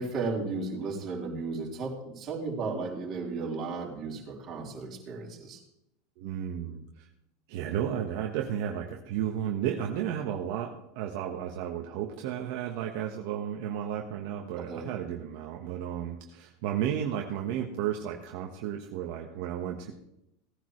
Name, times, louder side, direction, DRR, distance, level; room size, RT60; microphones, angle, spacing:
voice 1, 0.0-5.6 14.6-14.9, right 3 dB, 35° right, -3 dB, 4.2 m, -34 dB
voice 2, 6.2-7.1 7.5-19.9, right 9 dB, 65° right, 1 dB, 1.3 m, -33 dB
18.0 x 10.0 x 3.2 m, 0.84 s
supercardioid pair, 125°, 0 cm